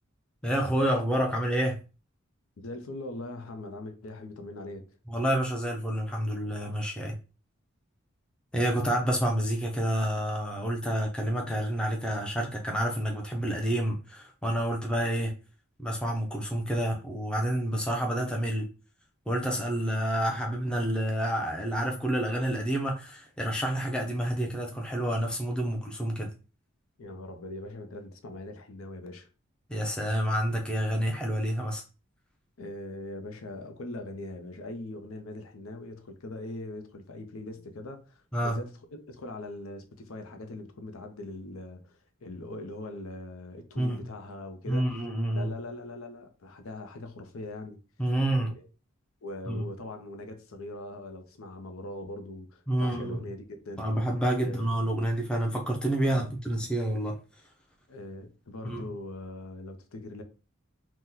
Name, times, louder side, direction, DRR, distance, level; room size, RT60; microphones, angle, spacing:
voice 1, 0.4-1.8 5.1-7.1 8.5-15.3 15.8-18.7 19.3-26.3 29.7-31.8 38.3-38.6 43.8-44.1 44.7-45.5 48.0-48.6 49.5-49.7 52.7-53.3 53.8-57.2 58.6-58.9, right 1 dB, 5° left, 0.4 m, -28 dB
voice 2, 2.6-4.9 27.0-29.3 32.6-44.9 45.3-47.8 48.3-48.6 49.2-53.9 54.4-54.7 56.0-56.3 57.9-60.2, left 2 dB, 80° left, 0.6 m, -41 dB
2.9 x 2.1 x 3.7 m
head